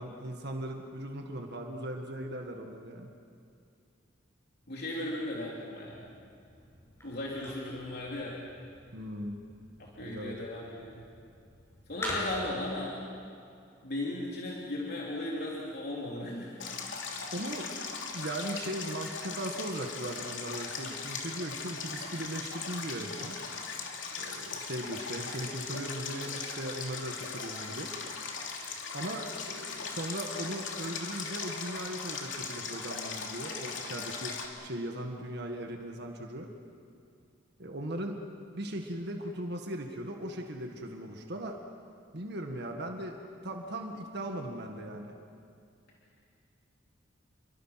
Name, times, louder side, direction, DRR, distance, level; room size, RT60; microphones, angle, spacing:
voice 1, 0.0-3.1 8.9-9.4 10.0-10.4 12.1-12.2 17.3-17.9 18.1-23.4 24.2-27.9 28.9-36.5 37.6-38.2 38.6-41.6 42.1-43.2 43.4-45.1, right 1 dB, 60° right, 3 dB, 1.8 m, -38 dB
voice 2, 4.7-6.1 7.0-8.4 9.8-11.0 11.9-13.0 13.8-16.6, left 1 dB, 60° left, -4 dB, 3.3 m, -36 dB
sound 1, 5.9-12.7, left 1 dB, 15° left, 8.0 m, -43 dB
Stream, 16.6-34.5, left 5 dB, 85° left, 2.9 m, -39 dB
29.5 x 23.5 x 5.9 m, 2.4 s
head